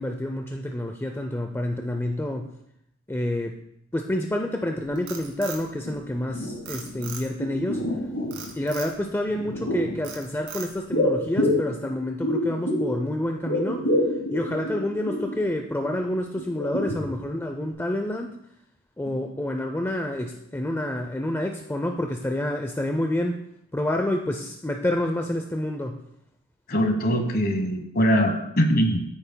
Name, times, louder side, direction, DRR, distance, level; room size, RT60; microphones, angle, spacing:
voice 1, 0.0-2.6 3.1-3.6 3.9-8.0 8.5-18.4 19.0-23.4 23.7-26.0, left 1 dB, 10° left, 4 dB, 0.5 m, -28 dB
Frog, 4.8-6.3 6.7-7.5 8.3-9.0 9.4-9.7 10.0-11.0, right 6 dB, 55° right, 2.2 m, -39 dB
sound 1, 5.9-6.0 6.2-7.1 7.4-8.5 9.3-10.0 10.9-13.0 13.3-15.4 15.8-15.9 16.4-17.4 17.7-17.8, left 1 dB, 85° left, 2.2 m, -27 dB
voice 2, 26.7-29.0, equal, 45° left, 6 dB, 1.2 m, -22 dB
15.0 x 8.8 x 2.2 m, 0.77 s
head